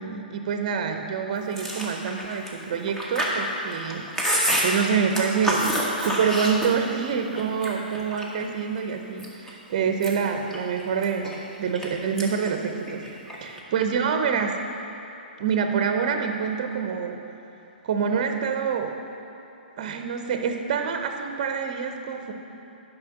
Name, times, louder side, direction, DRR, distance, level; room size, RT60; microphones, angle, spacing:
voice 1, 0.0-4.0 4.6-5.6 6.0-13.0 13.4-14.5 15.4-17.2 17.8-18.9 19.8-22.3, right 6 dB, 45° right, 5 dB, 0.8 m, -26 dB
Chewing mastication, 1.5-7.0 7.4-8.4 8.9-9.5 9.9-11.9 12.2-12.5 12.8-13.6, equal, 10° left, 1.3 m, -28 dB
10.5 x 5.5 x 6.0 m, 2.9 s
figure-of-eight pair, 120°, 5 cm